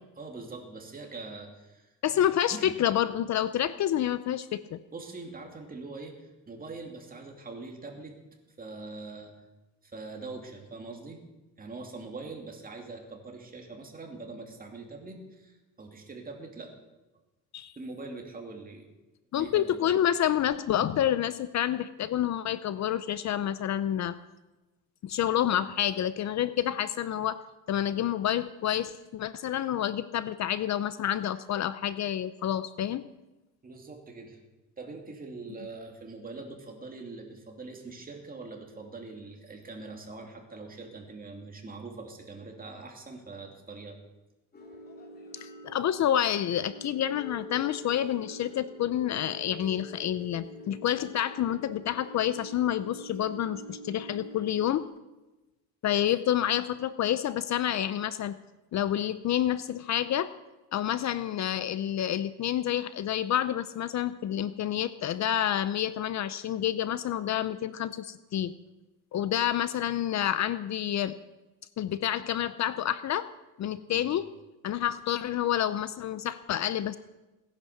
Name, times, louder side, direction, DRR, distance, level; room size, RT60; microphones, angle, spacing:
voice 1, 0.2-1.9 2.5-2.8 4.9-8.2 8.6-9.3 9.8-11.2 11.6-16.7 17.8-18.9 19.4-20.0 33.6-34.4 34.8-44.0 73.9-74.1, right 3 dB, 25° right, 2 dB, 2.7 m, -43 dB
voice 2, 2.0-4.8 17.5-17.7 19.3-24.2 25.0-27.4 27.7-33.1 45.4-54.9 55.8-58.4 58.7-60.3 60.7-68.5 69.1-71.2 71.8-73.3 73.6-74.3 74.6-77.0, left 11 dB, 50° left, 14 dB, 0.6 m, -28 dB
sound 1, 44.5-54.8, equal, 25° left, 2.8 m, -45 dB
17.5 x 10.5 x 6.7 m, 1.1 s
cardioid pair, 135°, 35 cm